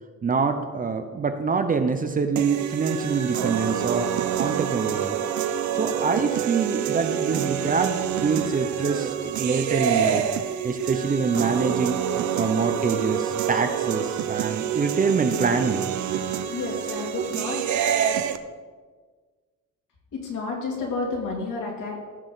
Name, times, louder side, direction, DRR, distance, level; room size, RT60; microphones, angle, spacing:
voice 1, 0.2-4.1 4.4-5.2 5.7-10.3 10.6-12.0 12.4-15.9, right 5 dB, 25° right, 7 dB, 0.5 m, -25 dB
sound 1, 2.4-18.4, right 9 dB, 65° right, 0.7 m, -27 dB
voice 2, 16.5-17.7 20.1-22.0, left 3 dB, 70° left, -2 dB, 2.9 m, -30 dB
17.0 x 6.3 x 3.9 m, 1.5 s
cardioid pair, 175°, 32 cm